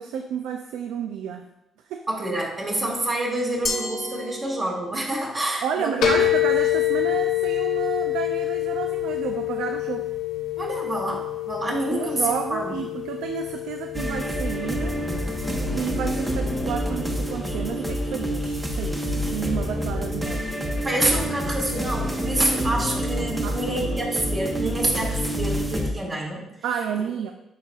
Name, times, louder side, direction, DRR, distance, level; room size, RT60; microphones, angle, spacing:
voice 1, 0.0-1.5 1.9-2.1 5.6-10.1 11.9-15.0 15.7-20.4 23.4-24.0 26.6-27.3, right 7 dB, 90° right, 6 dB, 0.3 m, -31 dB
voice 2, 2.1-6.1 10.6-12.8 20.8-26.4, right 1 dB, 35° right, -3 dB, 1.9 m, -27 dB
Glass, 3.7-5.1, left 3 dB, 25° left, 0.9 m, -32 dB
sound 1, 6.0-23.4, left 13 dB, 85° left, 0.8 m, -29 dB
sound 2, 13.9-25.9, equal, 10° right, 0.8 m, -27 dB
10.0 x 4.1 x 2.4 m, 0.85 s
cardioid pair, 90°, 0 cm